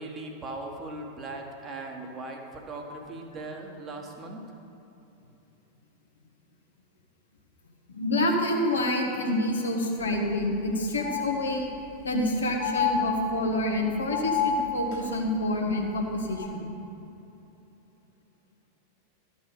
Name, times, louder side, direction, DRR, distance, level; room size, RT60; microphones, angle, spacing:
voice 1, 0.0-4.4, right 2 dB, 25° right, 1 dB, 1.5 m, -39 dB
voice 2, 7.9-11.7 12.0-16.7, left 1 dB, 70° left, 1 dB, 1.6 m, -27 dB
Wine glass being played, 10.0-10.1 10.4-10.5 11.0-11.9 12.6-13.6 14.1-15.1 16.3-16.5, left 5 dB, 50° left, 2.8 m, -29 dB
12.5 x 6.1 x 7.0 m, 2.9 s
figure-of-eight pair, 90°, 0 cm